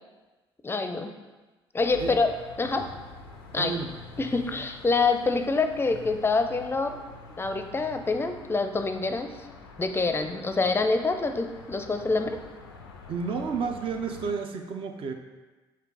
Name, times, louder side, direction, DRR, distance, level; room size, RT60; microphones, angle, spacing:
voice 1, 0.6-1.1 1.7-2.3 2.6-2.8 3.5-3.7 4.2-7.0 7.4-9.3 9.8-12.4, left 3 dB, 20° left, 6 dB, 0.5 m, -26 dB
sound 1, 1.8-14.3, left 4 dB, 90° left, 0.4 m, -46 dB
voice 2, 3.6-3.9 13.1-15.1, right 5 dB, 50° right, 5 dB, 0.5 m, -31 dB
4.4 x 2.5 x 4.7 m, 1.2 s
hypercardioid pair, 50°, 12 cm